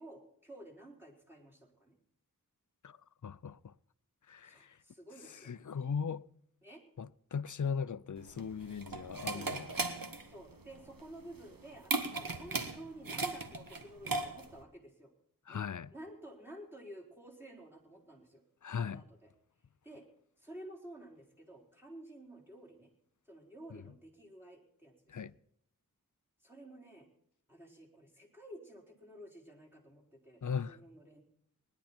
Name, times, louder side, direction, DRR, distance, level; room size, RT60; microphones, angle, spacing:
voice 1, 0.0-2.0 4.4-5.5 6.6-6.8 9.3-9.6 10.3-15.1 15.5-15.6 15.9-18.4 18.7-19.3 19.8-20.0 20.4-22.9 23.3-25.3 26.4-27.1 27.5-31.2, right 1 dB, 5° right, 4.0 m, -52 dB
voice 2, 3.2-3.7 4.3-4.8 5.4-6.3 7.0-9.7 15.5-15.9 18.6-19.0 23.7-23.8 25.1-25.3 30.4-30.8, left 6 dB, 60° left, 0.5 m, -38 dB
sound 1, 8.2-14.6, right 3 dB, 75° right, 1.4 m, -38 dB
20.0 x 11.0 x 4.4 m
wide cardioid pair, 45°, 34 cm